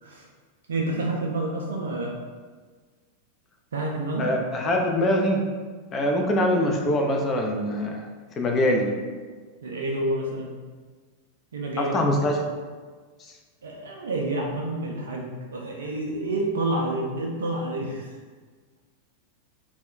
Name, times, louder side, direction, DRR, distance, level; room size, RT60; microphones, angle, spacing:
voice 1, 0.7-2.1 3.7-4.3 9.6-10.5 11.5-12.0 13.6-15.3 15.5-18.1, right 2 dB, 65° right, -1 dB, 0.4 m, -28 dB
voice 2, 4.2-5.5 5.9-8.0 8.4-8.9 11.8-12.4, left 1 dB, 25° left, 2 dB, 0.4 m, -23 dB
2.2 x 2.2 x 3.7 m, 1.5 s
figure-of-eight pair, 90°, 0 cm